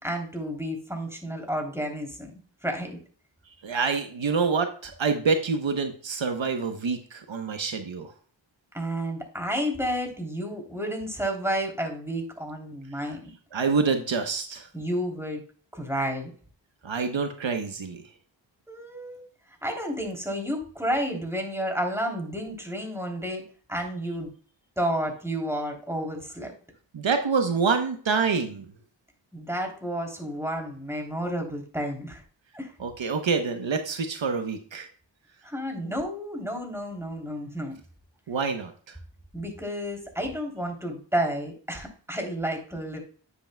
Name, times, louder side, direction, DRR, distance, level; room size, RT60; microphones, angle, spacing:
voice 1, 0.0-3.0 8.7-13.3 14.7-15.4 15.7-16.3 18.7-19.2 19.6-23.4 23.7-24.3 24.8-26.5 29.3-32.2 32.5-32.7 35.4-37.8 39.3-43.0, equal, 5° right, 2 dB, 3.2 m, -31 dB
voice 2, 3.6-8.1 13.5-14.7 16.8-18.0 26.9-28.7 32.8-34.9 38.3-38.7, right 5 dB, 85° right, 6 dB, 1.0 m, -26 dB
9.8 x 8.1 x 2.2 m, 0.41 s
cardioid pair, 45°, 45 cm